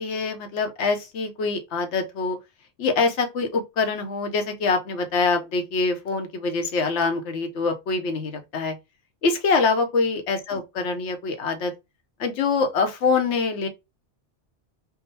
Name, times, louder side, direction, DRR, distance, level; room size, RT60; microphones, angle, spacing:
voice 1, 0.0-2.4 2.8-8.7 9.2-11.7 12.2-13.7, left 4 dB, 70° left, 1.1 m, -24 dB
3.8 x 2.2 x 4.0 m
omnidirectional pair, 1.2 m